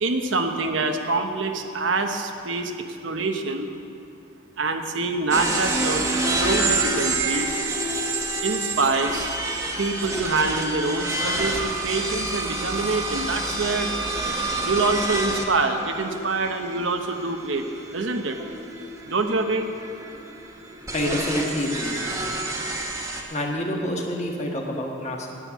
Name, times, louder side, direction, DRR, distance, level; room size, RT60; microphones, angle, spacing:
voice 1, 0.0-2.7 3.0-3.7 4.6-6.0 6.4-7.5 8.4-9.4 9.8-13.9 14.6-17.6 17.9-18.4 19.1-19.7, right 3 dB, 90° right, 5 dB, 0.9 m, -25 dB
sound 1, 5.3-23.2, right 2 dB, 15° right, 1.0 m, -28 dB
voice 2, 20.9-22.0 23.3-25.3, left 1 dB, 35° left, 0 dB, 1.5 m, -27 dB
9.7 x 9.2 x 8.3 m, 2.6 s
head